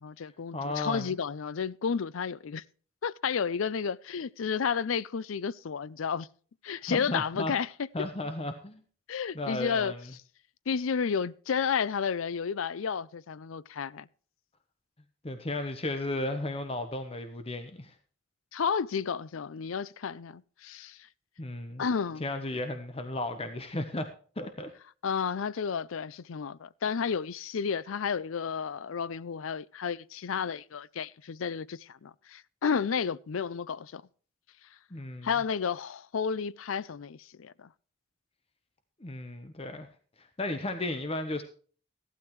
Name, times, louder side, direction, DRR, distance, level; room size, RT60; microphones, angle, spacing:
voice 1, 0.0-2.6 3.0-6.3 6.6-7.9 9.1-9.9 10.7-14.1 18.5-21.1 21.8-22.2 25.0-34.0 35.2-37.7, left 6 dB, 80° left, 0.5 m, -32 dB
voice 2, 0.5-1.2 6.9-7.5 7.9-8.8 9.3-10.0 15.2-17.9 21.4-21.8 22.2-24.1 24.4-24.7 34.9-35.3 39.0-39.9 40.2-41.4, left 2 dB, 30° left, 0.9 m, -34 dB
15.0 x 12.0 x 3.1 m
head